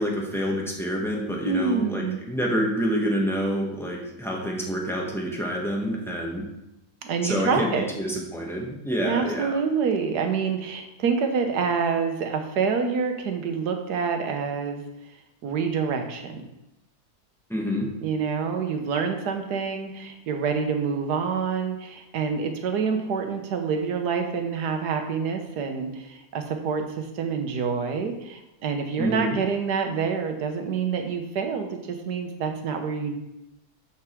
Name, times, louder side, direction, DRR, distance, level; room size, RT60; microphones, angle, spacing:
voice 1, 0.0-6.5 7.2-7.7 8.0-9.5 17.5-17.9 29.0-29.4, equal, ahead, -2 dB, 1.2 m, -27 dB
voice 2, 1.4-2.2 7.0-7.9 9.0-14.8 15.4-16.5 18.0-33.1, right 5 dB, 80° right, 5 dB, 1.5 m, -27 dB
9.7 x 4.7 x 4.6 m, 0.90 s
omnidirectional pair, 1.7 m